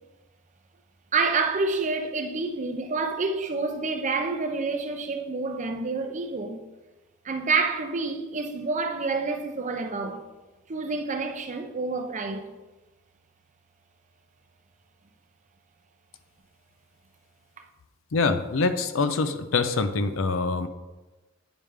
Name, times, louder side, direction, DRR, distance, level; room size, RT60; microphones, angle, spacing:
voice 1, 1.1-6.6 7.2-10.2 10.7-12.5, right 4 dB, 35° right, 0.6 m, -28 dB
voice 2, 18.1-20.7, left 4 dB, 70° left, 0.5 m, -25 dB
9.0 x 3.3 x 5.0 m
head